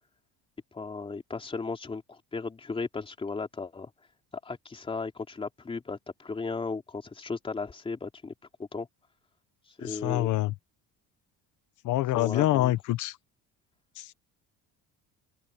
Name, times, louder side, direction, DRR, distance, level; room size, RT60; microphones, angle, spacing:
voice 1, 0.7-3.9 4.4-8.3 8.6-8.9 9.8-10.3 12.1-12.7, left 4 dB, 15° left, 3.4 m, -35 dB
voice 2, 9.8-10.5 11.8-13.2 14.0-14.1, left 16 dB, 60° left, 1.3 m, -26 dB
open air
cardioid pair, 170°, 34 cm